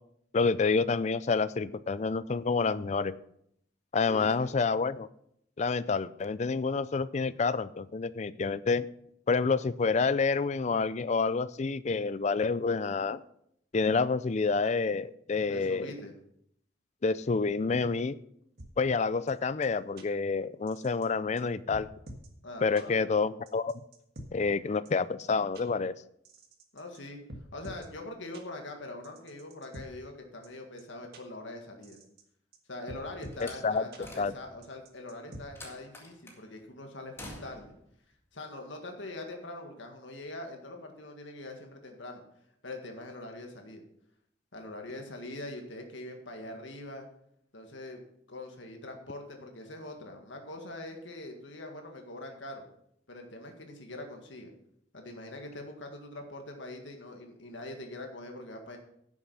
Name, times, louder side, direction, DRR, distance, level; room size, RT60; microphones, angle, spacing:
voice 1, 0.3-3.1 3.9-5.1 5.6-8.9 9.3-13.2 13.7-15.9 17.0-18.1 18.8-21.9 22.6-23.8 24.3-25.9 33.4-33.8 34.2-34.3, left 4 dB, 40° left, 17 dB, 0.4 m, -28 dB
voice 2, 4.1-4.5 15.5-16.1 22.4-23.1 26.7-27.2 27.5-32.0 32.7-37.7 38.3-42.2 42.6-43.8 44.5-47.1 47.5-48.0 48.3-52.7 53.1-54.5 54.9-58.8, left 2 dB, 85° left, 3 dB, 1.8 m, -43 dB
sound 1, 18.6-18.7 19.3-19.4 19.6-19.7 20.0-20.1 20.7-21.1 21.4-21.5 21.7-22.3 22.8-22.9 23.5-24.3 24.9-25.0 25.2-25.3 25.5-25.6 26.3-27.0 27.3-27.9 28.3-28.4 29.0-29.9 30.4-30.5 30.8-30.9 31.1-31.2 31.8-32.2 32.5-32.6 32.9-33.4 33.9-34.0 34.6-35.4, right 1 dB, 55° right, 1.6 m, -46 dB
Slam, 33.3-34.7 35.6-36.4 37.2-37.8, left 1 dB, 15° left, 1.9 m, -47 dB
11.0 x 7.2 x 5.6 m, 0.72 s
head